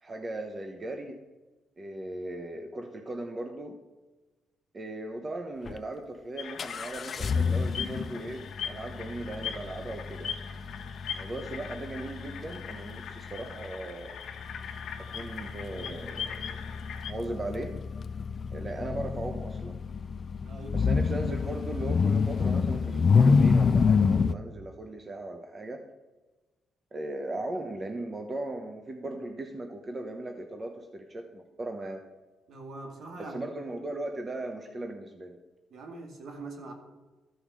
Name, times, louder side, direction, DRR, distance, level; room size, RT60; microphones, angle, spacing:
voice 1, 0.0-1.2 1.8-3.8 4.7-10.4 11.1-14.2 15.1-16.7 17.0-17.7 18.5-19.8 20.7-25.8 26.9-32.0 33.2-35.4, right 2 dB, 30° right, 4 dB, 1.0 m, -38 dB
sound 1, 5.7-5.8 6.6-24.3, left 5 dB, 45° left, 0.4 m, -28 dB
sound 2, 6.4-17.1, left 7 dB, 70° left, 1.3 m, -41 dB
voice 2, 20.4-20.8 32.5-33.4 35.7-36.7, right 2 dB, 65° right, 3 dB, 2.1 m, -42 dB
13.5 x 4.9 x 6.2 m, 1.2 s
cardioid pair, 90°, 0 cm